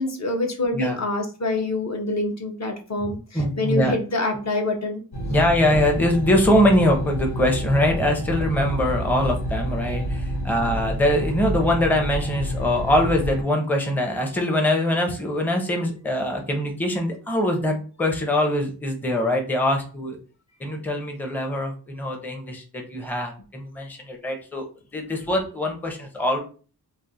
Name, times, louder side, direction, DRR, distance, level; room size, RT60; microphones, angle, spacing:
voice 1, 0.0-5.0, left 2 dB, 45° left, 2 dB, 0.6 m, -26 dB
voice 2, 3.3-3.9 5.2-20.2 20.6-24.7 24.9-26.4, left 1 dB, 5° left, 3 dB, 0.6 m, -23 dB
sound 1, 5.1-13.4, right 1 dB, 70° left, 1.1 m, -29 dB
2.4 x 2.3 x 4.0 m, 0.37 s
wide cardioid pair, 105°, 39 cm